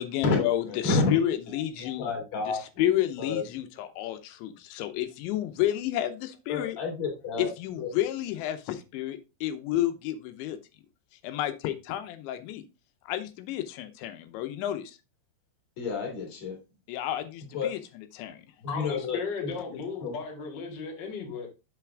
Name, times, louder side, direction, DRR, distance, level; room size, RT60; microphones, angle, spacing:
voice 1, 0.0-2.1 2.5-6.8 7.4-10.6 11.2-12.6 13.1-15.0 16.9-18.5, left 12 dB, 85° left, 10 dB, 3.1 m, -31 dB
voice 2, 0.7-1.1 1.8-2.6 3.2-3.4 6.5-7.5 7.8-7.9 15.8-16.5 17.5-17.7 18.6-19.2 20.0-20.1, left 4 dB, 45° left, 1 dB, 2.9 m, -29 dB
voice 3, 18.6-21.5, left 5 dB, 65° left, 0 dB, 1.0 m, -35 dB
7.2 x 5.8 x 3.5 m, 0.28 s
omnidirectional pair, 5.2 m